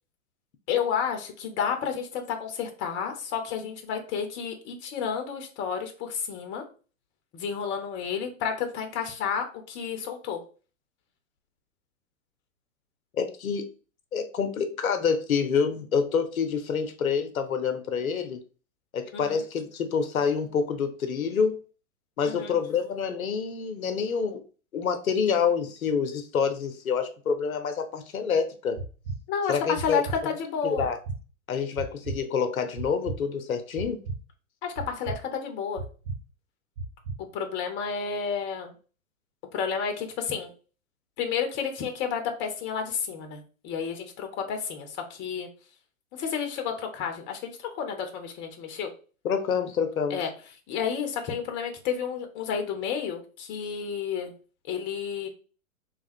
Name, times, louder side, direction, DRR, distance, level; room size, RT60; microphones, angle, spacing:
voice 1, 0.7-6.6 7.3-10.4 19.1-19.4 22.2-22.6 29.3-30.9 34.6-35.8 37.2-38.7 39.5-40.5 41.2-45.5 46.1-48.9 50.1-50.3 50.7-54.3 54.7-55.3, left 7 dB, 25° left, 0.9 m, -31 dB
voice 2, 13.1-13.7 14.1-18.4 18.9-21.6 22.2-24.4 24.7-28.8 29.5-30.0 30.6-31.0 31.5-34.0 49.2-50.2, left 6 dB, 80° left, 0.8 m, -27 dB
sound 1, 28.8-29.2 29.8-30.2 30.8-31.2 31.8-32.2 32.8-33.2 33.8-34.2 34.8-35.2 35.8-36.2 36.8-37.1, right 4 dB, 45° right, 1.1 m, -34 dB
3.5 x 2.3 x 4.2 m
hypercardioid pair, 120°, 41 cm